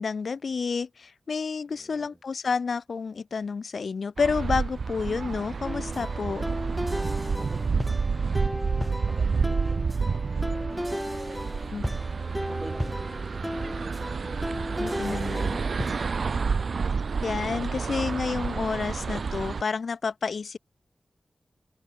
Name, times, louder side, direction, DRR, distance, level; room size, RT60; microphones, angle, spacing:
voice 1, 0.0-6.4 11.7-11.9 14.8-15.6 17.2-20.6, left 5 dB, 70° left, 0.4 m, -30 dB
voice 2, 1.7-2.2 7.3-10.5 11.2-12.1 12.5-14.3, right 2 dB, 25° right, 3.0 m, -48 dB
sound 1, 4.2-19.6, right 5 dB, 70° right, 0.4 m, -29 dB
sound 2, 5.6-16.2, equal, 5° left, 0.4 m, -35 dB
wide cardioid pair, 80°, 0 cm